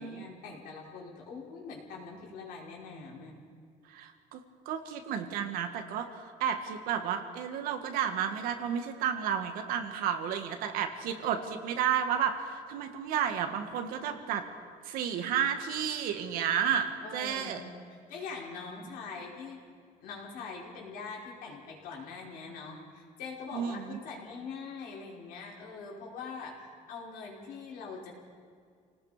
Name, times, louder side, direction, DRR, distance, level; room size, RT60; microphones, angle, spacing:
voice 1, 0.0-3.4 17.0-19.6 20.0-28.2, left 4 dB, 75° left, -2 dB, 5.2 m, -43 dB
voice 2, 3.9-4.4 4.7-14.5 14.8-17.6 23.5-24.0, right 8 dB, 80° right, 6 dB, 2.0 m, -32 dB
28.5 x 18.5 x 5.2 m, 2.2 s
cardioid pair, 155°, 15 cm